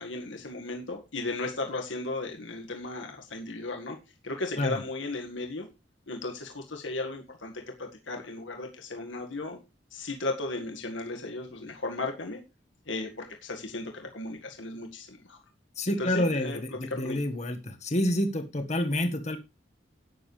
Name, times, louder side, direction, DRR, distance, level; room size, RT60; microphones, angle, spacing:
voice 1, 0.0-4.0 4.2-5.7 6.1-9.6 9.9-12.4 12.9-15.4 15.9-16.6 16.9-17.2, left 2 dB, 90° left, 3 dB, 1.9 m, -35 dB
voice 2, 15.8-19.4, left 1 dB, 40° left, 5 dB, 1.6 m, -28 dB
13.0 x 9.7 x 3.3 m, 0.26 s
head